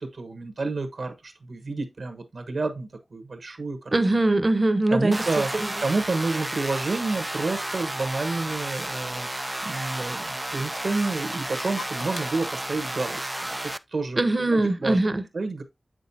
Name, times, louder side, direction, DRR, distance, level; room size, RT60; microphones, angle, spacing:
voice 1, 0.0-3.9 4.9-5.5 5.8-9.3 9.6-13.6 13.9-14.2 14.5-15.0 15.3-15.6, right 3 dB, 75° right, 1.3 m, -29 dB
voice 2, 3.9-5.8 14.2-15.2, right 2 dB, 35° right, 0.9 m, -22 dB
sound 1, 5.1-13.8, right 1 dB, 20° right, 0.4 m, -32 dB
Clock, 7.0-7.1 7.5-9.0 9.2-9.3 9.6-10.2 10.6-12.2, left 3 dB, 50° left, 1.0 m, -44 dB
7.9 x 6.3 x 2.8 m
wide cardioid pair, 80°, 0 cm